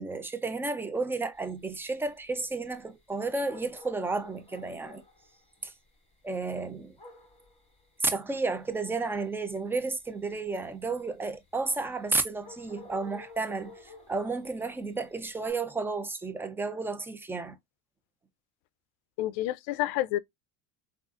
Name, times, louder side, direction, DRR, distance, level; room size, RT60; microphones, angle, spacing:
voice 1, 0.0-5.0 5.6-5.7 6.2-7.0 8.0-17.6, right 3 dB, 5° right, 0.3 m, -32 dB
sound 1, 1.3-15.5, left 3 dB, 15° left, 2.2 m, -54 dB
voice 2, 19.2-20.2, left 15 dB, 70° left, 0.5 m, -29 dB
3.7 x 2.4 x 2.4 m
cardioid pair, 115°, 40 cm